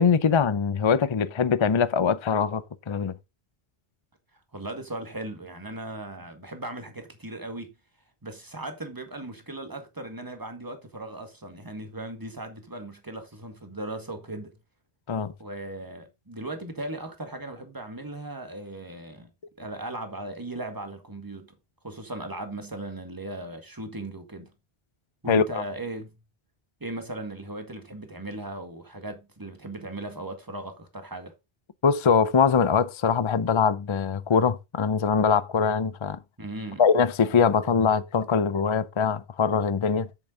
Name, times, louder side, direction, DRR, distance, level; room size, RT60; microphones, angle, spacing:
voice 1, 0.0-3.1 15.1-15.3 25.3-25.6 31.8-36.2 36.8-40.1, left 6 dB, 35° left, 0.5 m, -22 dB
voice 2, 4.5-7.7 8.2-14.5 15.4-19.3 19.6-21.5 21.8-24.5 25.2-26.1 26.8-31.3 36.4-36.8, right 2 dB, 20° right, 1.8 m, -37 dB
8.1 x 7.1 x 3.8 m
omnidirectional pair, 1.1 m